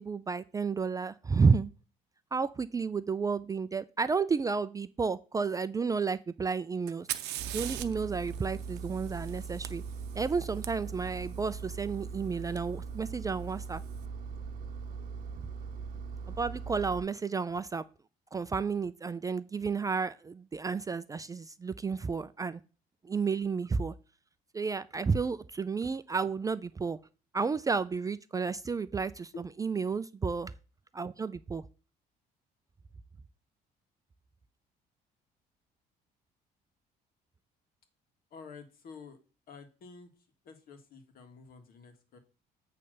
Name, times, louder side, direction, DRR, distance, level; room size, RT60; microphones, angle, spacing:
voice 1, 0.0-1.7 2.3-7.1 7.5-9.8 10.2-13.8 16.4-17.8 18.3-22.6 23.0-23.9 24.5-27.0 27.3-29.3 29.6-30.5 30.9-31.6, right 5 dB, 20° right, 0.3 m, -31 dB
Fire, 6.9-10.7 12.6-12.7 13.5-13.9, right 14 dB, 85° right, 0.6 m, -41 dB
Engine, 7.4-17.0, right 5 dB, 55° right, 0.8 m, -40 dB
voice 2, 38.3-39.2 39.5-40.1 40.4-42.2, left 5 dB, 60° left, 1.8 m, -49 dB
8.5 x 3.3 x 6.4 m
cardioid pair, 110°, 17 cm